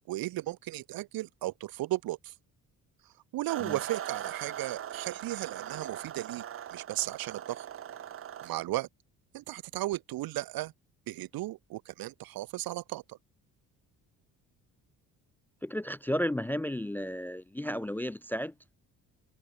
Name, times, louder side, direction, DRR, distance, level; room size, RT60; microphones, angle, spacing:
voice 1, 0.1-2.3 3.3-6.4 6.7-7.7 8.4-8.9 9.3-10.7 11.1-13.2, right 16 dB, 85° right, 2.8 m, -35 dB
sound 1, 3.5-8.5, right 10 dB, 40° right, 1.1 m, -40 dB
voice 2, 15.6-18.5, equal, 5° left, 0.4 m, -33 dB
cardioid pair, 160°, 35 cm